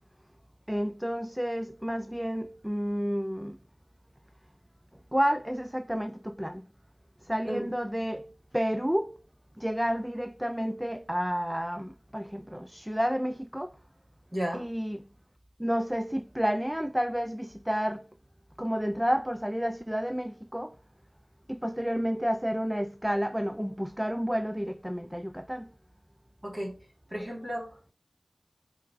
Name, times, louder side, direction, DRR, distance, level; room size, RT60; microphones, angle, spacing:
voice 1, 0.7-3.6 5.1-6.6 7.3-9.2 9.6-13.7 14.5-15.0 15.6-18.1 18.6-20.7 21.5-25.7, equal, 5° right, 0.3 m, -30 dB
voice 2, 14.3-14.7 26.4-26.7 27.1-27.9, equal, 25° right, 3.3 m, -34 dB
7.6 x 4.4 x 5.3 m
wide cardioid pair, 80°, 0 cm